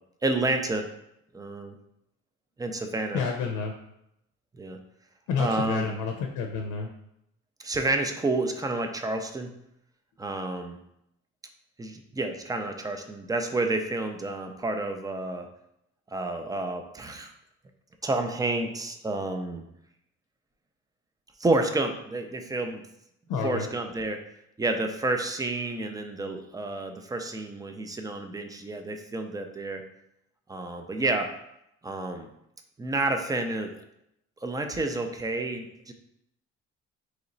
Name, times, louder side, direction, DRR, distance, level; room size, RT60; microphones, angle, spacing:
voice 1, 0.2-0.9 1.3-1.7 2.6-3.2 4.6-4.8 5.4-5.9 7.6-9.5 10.2-10.8 11.8-15.5 16.1-17.3 18.0-19.6 21.4-22.8 23.4-24.2 24.6-29.8 30.5-31.3 31.8-32.3 32.8-33.8 34.4-35.9, right 2 dB, 10° right, 5 dB, 0.4 m, -29 dB
voice 2, 3.1-3.7 5.3-6.9 23.3-23.7, left 5 dB, 90° left, 3 dB, 0.5 m, -29 dB
3.1 x 2.9 x 3.8 m, 0.80 s
cardioid pair, 90°, 30 cm